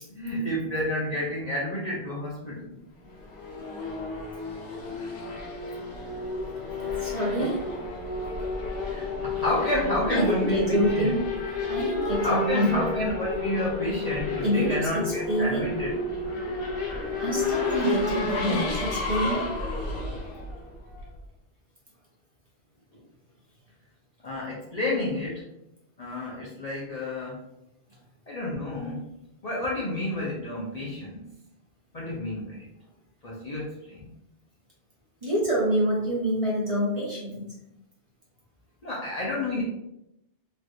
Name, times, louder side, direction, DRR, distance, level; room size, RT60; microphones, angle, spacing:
voice 1, 0.1-2.8 8.8-11.2 12.2-15.9 24.2-25.4 26.0-27.4 28.3-29.0 29.4-31.3 31.9-32.7 33.2-34.1 38.8-39.6, left 1 dB, 45° left, -6 dB, 0.6 m, -30 dB
Race car auto racing / Accelerating revving vroom, 3.1-21.2, left 3 dB, 90° left, 1.1 m, -31 dB
voice 2, 7.0-7.6 10.1-11.2 11.7-12.7 14.4-15.6 17.2-19.5 35.2-37.5, equal, 30° right, -6 dB, 1.0 m, -26 dB
3.2 x 2.4 x 2.7 m, 0.82 s
omnidirectional pair, 1.2 m